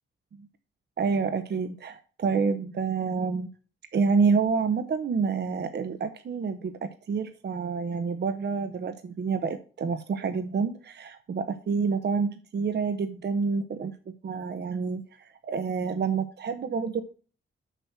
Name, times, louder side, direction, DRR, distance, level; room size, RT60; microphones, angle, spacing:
voice 1, 1.0-3.5 3.9-13.9 14.2-17.0, right 5 dB, 55° right, 8 dB, 0.9 m, -28 dB
6.9 x 6.0 x 5.8 m, 0.38 s
cardioid pair, 110°, 21 cm